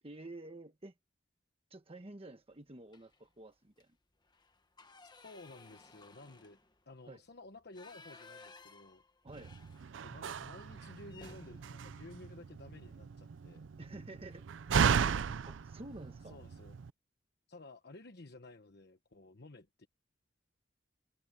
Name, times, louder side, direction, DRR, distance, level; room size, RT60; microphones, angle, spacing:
voice 1, 0.0-0.9 1.7-4.0 7.1-7.2 9.2-9.6 13.8-14.8 15.4-16.4, right 2 dB, 30° right, 1.2 m, -50 dB
sound 1, 2.9-3.3 3.7-3.8 4.2-10.3 10.6-10.7 11.1-13.2 14.6-14.8 15.2-15.4 15.6-16.3, left 3 dB, 25° left, 1.4 m, -58 dB
voice 2, 5.2-6.6 6.9-9.0 10.0-13.7 16.2-16.7 17.5-19.9, left 2 dB, 60° left, 1.2 m, -53 dB
Slam, 9.3-16.9, right 6 dB, 85° right, 0.5 m, -36 dB
head